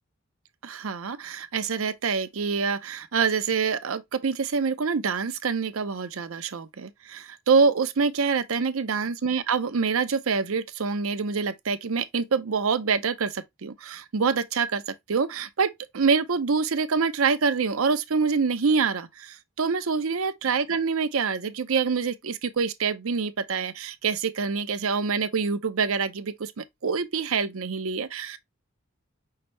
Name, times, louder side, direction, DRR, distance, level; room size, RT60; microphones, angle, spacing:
voice 1, 0.6-28.4, right 5 dB, 85° right, 0.6 m, -26 dB
5.7 x 2.7 x 3.1 m
head